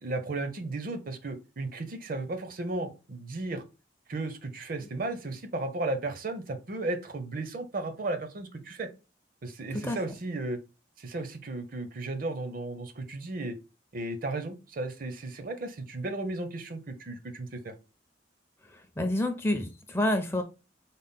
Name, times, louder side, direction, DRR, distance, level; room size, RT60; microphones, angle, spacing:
voice 1, 0.0-3.6 4.1-8.9 9.4-10.6 11.0-13.6 13.9-17.7, right 2 dB, 50° right, 8 dB, 0.5 m, -34 dB
voice 2, 18.7-20.4, left 1 dB, 15° left, 6 dB, 0.4 m, -28 dB
3.9 x 2.1 x 3.6 m, 0.30 s
head